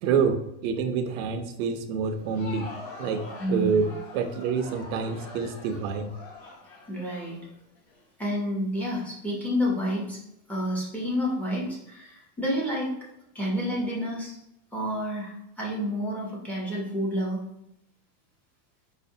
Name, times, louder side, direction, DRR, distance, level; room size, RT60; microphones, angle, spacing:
voice 1, 0.0-2.7 3.0-3.9 4.1-6.1, right 6 dB, 55° right, 8 dB, 0.5 m, -27 dB
Crowd, 2.1-8.0, left 3 dB, 50° left, 1.1 m, -44 dB
voice 2, 3.4-3.8 6.9-7.4 8.2-10.2 10.5-12.9 13.3-14.4 14.7-17.4, equal, 5° left, -5 dB, 0.5 m, -29 dB
4.8 x 2.0 x 2.6 m, 0.83 s
supercardioid pair, 150°, 49 cm